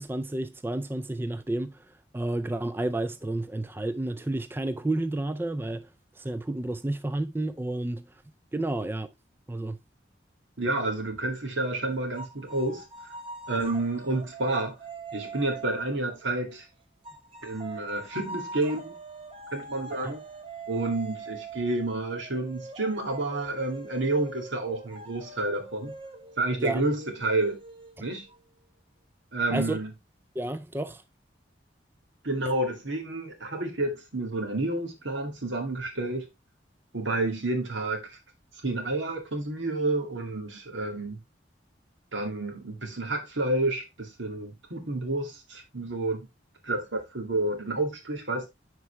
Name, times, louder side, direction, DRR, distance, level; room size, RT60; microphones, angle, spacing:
voice 1, 0.0-1.8 2.1-5.9 6.2-8.0 8.5-9.1 9.5-9.8 20.0-20.2 26.6-26.8 29.5-29.8 30.4-31.0, right 2 dB, 10° right, 0.3 m, -31 dB
voice 2, 10.6-13.1 13.5-14.8 15.1-16.7 17.4-18.9 19.5-20.2 20.7-25.9 26.4-27.6 28.0-28.2 29.3-29.9 32.2-36.3 36.9-38.2 38.6-41.2 42.1-46.3 46.6-48.5, right 2 dB, 85° right, 2.3 m, -30 dB
sound 1, 12.2-16.5 17.0-28.4, right 3 dB, 30° right, 1.1 m, -43 dB
10.0 x 4.7 x 3.2 m
head